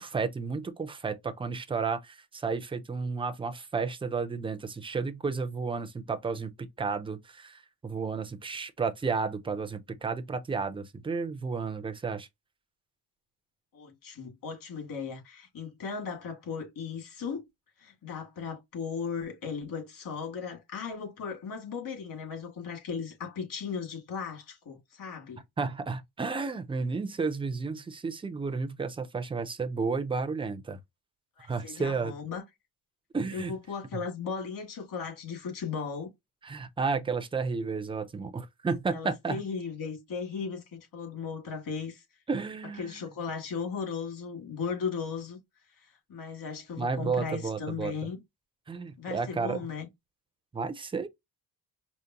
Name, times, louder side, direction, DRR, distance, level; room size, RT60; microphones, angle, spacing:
voice 1, 0.0-6.5 6.8-12.3 25.6-30.8 31.4-32.1 33.1-33.5 36.4-39.4 42.3-43.0 46.8-47.9 48.7-49.6 50.5-51.1, right 4 dB, 15° right, 0.4 m, -32 dB
voice 2, 13.7-17.4 17.8-25.4 31.4-32.4 33.3-36.1 38.9-42.0 42.8-45.4 45.8-48.2 49.0-49.9, left 5 dB, 55° left, 2.2 m, -37 dB
5.1 x 2.1 x 2.8 m
cardioid pair, 145°, 40 cm